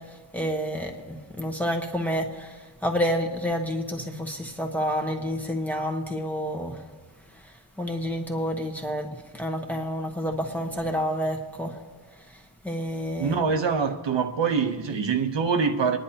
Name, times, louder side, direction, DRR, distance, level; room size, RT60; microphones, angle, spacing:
voice 1, 0.0-6.9 7.2-11.8 12.1-13.4, equal, 5° left, 1.1 m, -29 dB
voice 2, 13.2-16.0, right 5 dB, 70° right, 0.9 m, -24 dB
26.0 x 10.5 x 2.9 m
wide cardioid pair, 175°, 45 cm